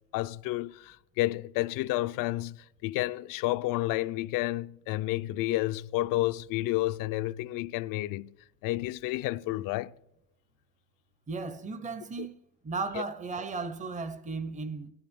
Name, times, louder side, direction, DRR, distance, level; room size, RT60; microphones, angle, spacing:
voice 1, 0.1-8.3 8.6-9.9 12.2-12.3 13.0-13.1, left 17 dB, 65° left, 0.5 m, -30 dB
voice 2, 11.3-12.4 12.6-14.9, right 4 dB, 20° right, 0.7 m, -35 dB
16.5 x 11.0 x 3.6 m
cardioid pair, 155°, 35 cm